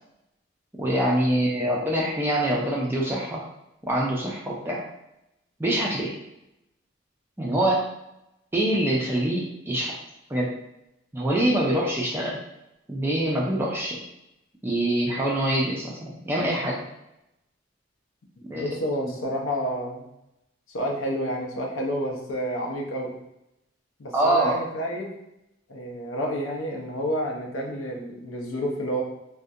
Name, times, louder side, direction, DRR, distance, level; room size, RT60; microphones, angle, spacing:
voice 1, 0.8-3.4 3.8-4.8 5.6-6.1 7.4-7.9 8.5-9.9 10.3-10.5 11.1-12.4 12.9-14.0 14.6-16.8 18.4-18.7 24.1-24.6, right 1 dB, 10° right, -3 dB, 0.3 m, -25 dB
voice 2, 18.5-20.1 20.7-23.1 24.0-25.1 25.7-29.0, equal, 90° left, 0 dB, 0.6 m, -29 dB
2.4 x 2.1 x 2.6 m, 0.88 s
head